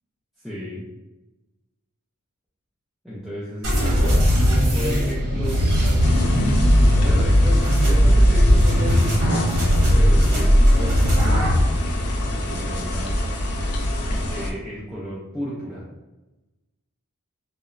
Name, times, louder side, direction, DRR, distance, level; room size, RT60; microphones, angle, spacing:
voice 1, 0.4-0.8 3.0-5.6 6.0-9.5 9.9-11.5 12.3-13.2 14.3-15.8, equal, ahead, -10 dB, 0.4 m, -33 dB
sound 1, 3.6-11.6, equal, 80° right, 0.8 m, -18 dB
sound 2, 6.0-14.5, equal, 85° left, 0.4 m, -22 dB
2.9 x 2.0 x 2.4 m, 1.1 s
head